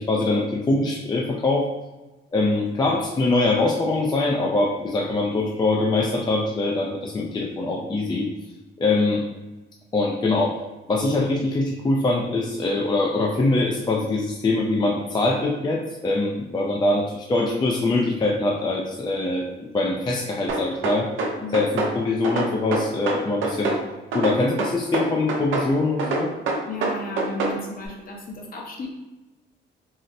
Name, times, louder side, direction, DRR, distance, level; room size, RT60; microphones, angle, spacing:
voice 1, 0.0-1.7 2.3-8.3 8.8-9.2 9.9-10.6 10.9-21.1 21.5-23.8 24.1-26.3, left 2 dB, 20° left, -1 dB, 0.3 m, -23 dB
sound 1, 20.5-21.9 22.2-23.8 24.1-25.7 26.0-27.6, right 3 dB, 80° right, 0.6 m, -25 dB
voice 2, 26.7-28.9, left 2 dB, 45° left, 0 dB, 0.8 m, -34 dB
4.0 x 2.0 x 2.5 m, 1.1 s
cardioid pair, 90°, 20 cm